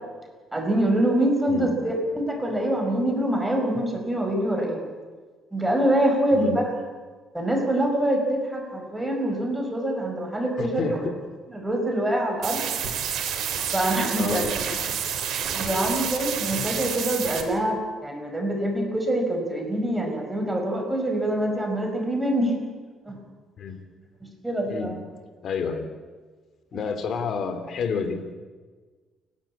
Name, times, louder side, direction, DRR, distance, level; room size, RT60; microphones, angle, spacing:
voice 1, 0.5-4.8 5.5-6.7 7.3-11.0 11.5-12.7 13.7-14.4 15.5-22.5 23.1-23.2 24.2-24.9, right 1 dB, 10° right, 3 dB, 5.3 m, -25 dB
voice 2, 10.6-11.1 12.8-12.9 14.2-14.5 23.6-23.8 24.7-24.9 25.4-25.9 26.7-28.3, left 5 dB, 60° left, 9 dB, 3.0 m, -29 dB
sound 1, 12.4-17.4, right 8 dB, 70° right, 3.5 m, -29 dB
29.5 x 12.0 x 8.6 m, 1.4 s
cardioid pair, 100°, 0 cm